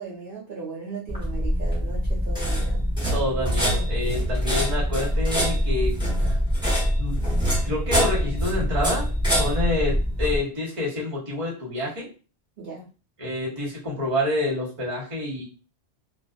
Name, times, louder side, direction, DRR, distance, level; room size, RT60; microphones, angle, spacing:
voice 1, 0.0-2.8 12.6-12.9, right 4 dB, 55° right, -6 dB, 0.8 m, -37 dB
sound 1, 1.1-10.4, equal, 5° right, 1.0 m, -24 dB
voice 2, 3.1-6.3 7.0-7.2 7.6-9.1 9.4-12.1 13.2-15.4, left 1 dB, 30° right, -5 dB, 1.1 m, -28 dB
2.4 x 2.4 x 2.3 m, 0.35 s
omnidirectional pair, 1.2 m